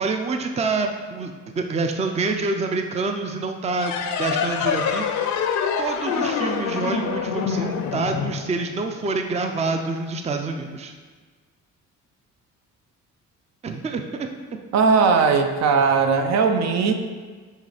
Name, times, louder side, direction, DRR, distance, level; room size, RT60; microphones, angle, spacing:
voice 1, 0.0-5.5 5.8-10.9 13.6-14.3, right 3 dB, 20° right, 5 dB, 0.5 m, -27 dB
sound 1, 3.8-9.0, left 6 dB, 70° left, 0.6 m, -26 dB
voice 2, 14.7-16.9, right 5 dB, 60° right, 5 dB, 0.6 m, -18 dB
6.5 x 3.2 x 4.9 m, 1.4 s
cardioid pair, 95°, 30 cm